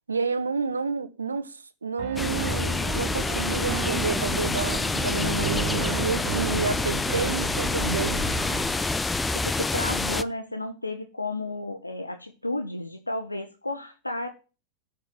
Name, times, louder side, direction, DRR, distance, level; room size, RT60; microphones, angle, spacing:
voice 1, 0.1-8.2, right 4 dB, 75° right, 1.4 m, -30 dB
Piano, 2.0-8.8, right 15 dB, 45° right, 0.9 m, -35 dB
sound 1, 2.2-10.2, left 3 dB, 10° left, 0.6 m, -27 dB
Bass guitar, 5.2-8.3, left 2 dB, 55° left, 4.9 m, -37 dB
voice 2, 9.3-14.3, left 2 dB, 85° left, 1.3 m, -32 dB
12.0 x 6.6 x 9.3 m
figure-of-eight pair, 90°, 0 cm